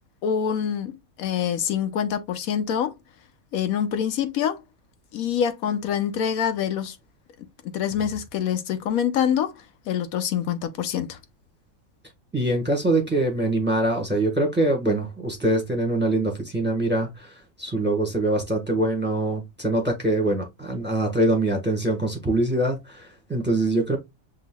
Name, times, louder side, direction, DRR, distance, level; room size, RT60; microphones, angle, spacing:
voice 1, 0.2-0.9 1.2-2.9 3.5-4.6 5.1-7.0 7.7-11.2, left 8 dB, 90° left, 1.2 m, -25 dB
voice 2, 12.3-24.0, right 1 dB, 10° right, 1.1 m, -24 dB
7.7 x 2.7 x 2.2 m
omnidirectional pair, 1.4 m